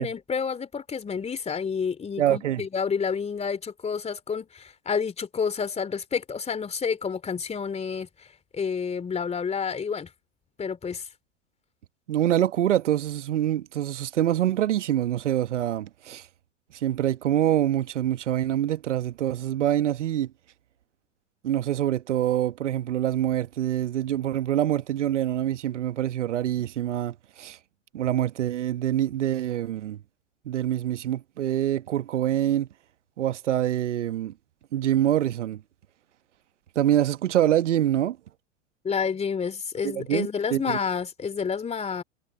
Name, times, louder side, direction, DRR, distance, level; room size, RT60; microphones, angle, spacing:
voice 1, 0.0-8.3 8.5-10.1 10.6-11.0 38.8-42.0, left 6 dB, 15° left, 3.5 m, -29 dB
voice 2, 2.2-2.6 12.1-16.3 16.7-20.3 21.4-27.6 27.9-30.0 30.4-32.7 33.2-34.3 34.7-35.6 36.7-38.2 39.8-40.8, right 12 dB, 65° right, 1.3 m, -25 dB
figure-of-eight pair, 95°, 38 cm